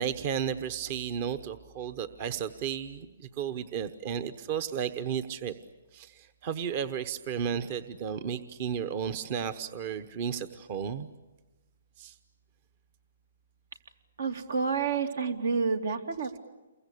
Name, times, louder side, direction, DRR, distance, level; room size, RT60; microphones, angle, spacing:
voice 1, 0.0-5.5 5.9-11.1 12.0-12.2 14.4-14.5 14.7-15.0, right 8 dB, 35° right, 12 dB, 1.0 m, -33 dB
voice 2, 14.2-16.4, right 5 dB, 80° right, 7 dB, 2.8 m, -29 dB
29.0 x 23.0 x 8.5 m, 1.1 s
hypercardioid pair, 155°, 0 cm